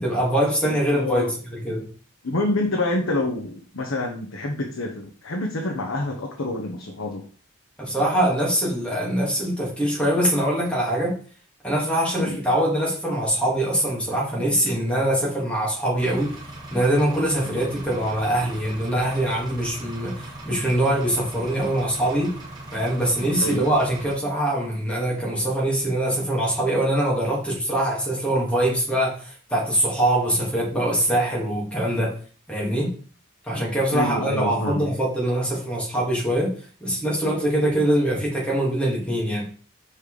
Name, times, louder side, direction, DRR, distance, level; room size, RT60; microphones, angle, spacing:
voice 1, 0.0-1.9 7.8-11.1 11.6-16.3 16.7-22.3 22.7-32.1 32.5-32.9 33.4-36.5 36.8-39.5, right 1 dB, 5° left, -4 dB, 2.6 m, -23 dB
voice 2, 0.6-1.3 2.2-7.2 12.2-12.4 17.4-17.6 23.4-23.7 33.9-34.9, left 2 dB, 75° left, 2 dB, 1.0 m, -27 dB
Engine, 16.0-24.1, right 1 dB, 20° right, 1.8 m, -39 dB
5.2 x 4.3 x 4.9 m, 0.42 s
head